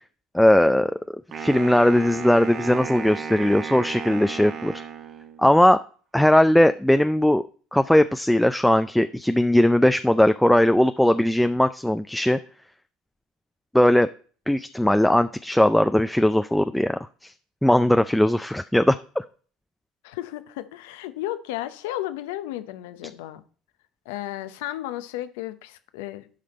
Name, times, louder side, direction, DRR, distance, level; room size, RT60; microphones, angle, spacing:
voice 1, 0.3-0.9 1.4-4.7 5.4-5.8 6.1-7.4 7.7-12.4 13.7-14.1 14.5-17.3 17.6-19.2, left 1 dB, 5° left, 0.4 m, -19 dB
Wind instrument woodwind instrument, 1.3-5.6, right 6 dB, 45° right, 1.2 m, -34 dB
voice 2, 20.0-23.4 24.1-26.3, left 14 dB, 75° left, 0.7 m, -33 dB
11.5 x 5.1 x 4.2 m
hypercardioid pair, 70°, 0 cm